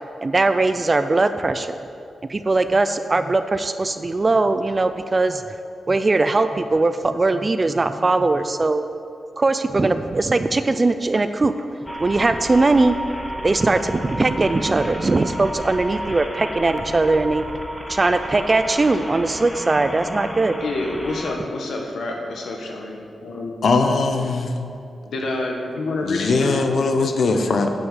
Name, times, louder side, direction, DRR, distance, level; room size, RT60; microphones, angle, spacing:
voice 1, 0.2-1.7 2.3-5.4 5.9-8.8 9.4-11.5 12.0-13.0 13.4-17.4 17.9-20.6, right 3 dB, 25° right, 10 dB, 0.3 m, -20 dB
sound 1, 11.9-21.3, equal, 10° left, 0.9 m, -32 dB
voice 2, 20.6-23.5 25.1-26.6, left 2 dB, 90° left, 1 dB, 1.4 m, -28 dB
voice 3, 23.6-24.5 26.0-27.7, left 3 dB, 60° left, 6 dB, 0.8 m, -20 dB
9.2 x 6.2 x 7.4 m, 2.5 s
wide cardioid pair, 165°, 0 cm